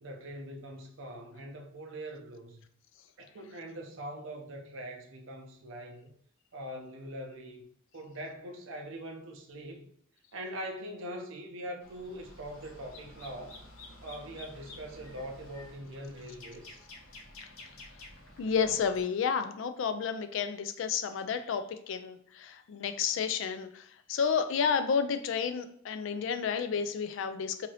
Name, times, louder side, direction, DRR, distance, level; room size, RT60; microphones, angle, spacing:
voice 1, 0.0-2.7 3.2-6.1 6.5-7.6 7.9-9.8 10.3-13.6 14.0-16.8, right 1 dB, 70° right, 0.6 m, -42 dB
sound 1, 11.8-19.0, left 2 dB, 90° left, 0.7 m, -51 dB
voice 2, 18.4-27.7, left 6 dB, 65° left, 0.3 m, -31 dB
2.6 x 2.6 x 3.1 m
head